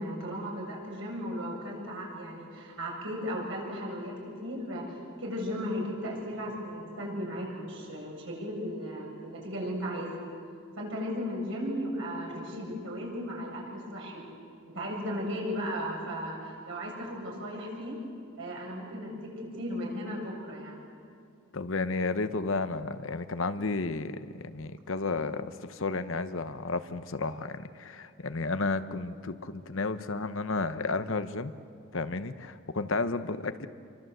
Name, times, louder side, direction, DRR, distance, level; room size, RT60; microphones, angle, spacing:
voice 1, 0.0-4.9 5.2-10.1 10.8-14.3 14.7-18.0 18.4-20.8, equal, 60° right, -2 dB, 7.4 m, -36 dB
voice 2, 21.5-31.5 31.9-33.7, left 3 dB, 60° left, 11 dB, 1.0 m, -32 dB
28.0 x 24.0 x 8.0 m, 2.4 s
head